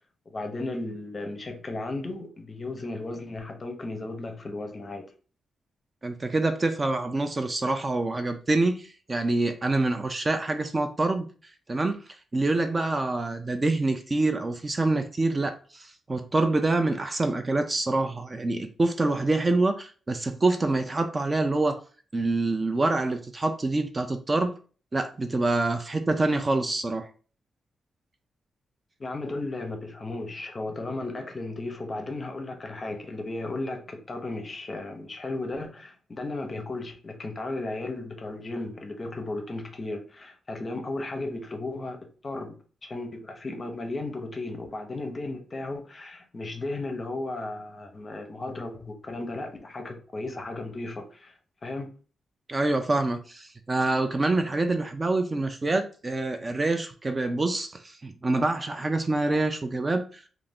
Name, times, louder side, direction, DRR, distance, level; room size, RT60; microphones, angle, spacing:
voice 1, 0.3-5.1 29.0-51.4 51.6-51.9, left 2 dB, 30° left, 0.6 m, -35 dB
voice 2, 6.0-21.8 22.1-24.5 24.9-27.1 52.5-60.2, right 2 dB, 25° right, 0.3 m, -26 dB
2.5 x 2.4 x 3.4 m
wide cardioid pair, 125°, 0 cm